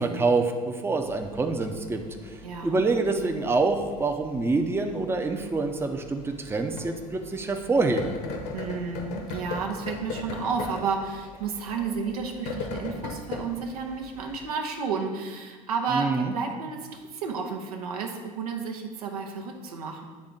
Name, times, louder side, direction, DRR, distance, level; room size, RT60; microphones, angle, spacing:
voice 1, 0.0-2.3 2.6-8.1 15.9-16.3, right 3 dB, 15° right, 4 dB, 0.6 m, -26 dB
sound 1, 1.0-14.5, left 4 dB, 60° left, 1.0 m, -40 dB
voice 2, 2.4-2.8 8.5-20.0, right 5 dB, 80° right, 3 dB, 0.8 m, -32 dB
8.9 x 3.4 x 3.8 m, 1.5 s
hypercardioid pair, 70°, 19 cm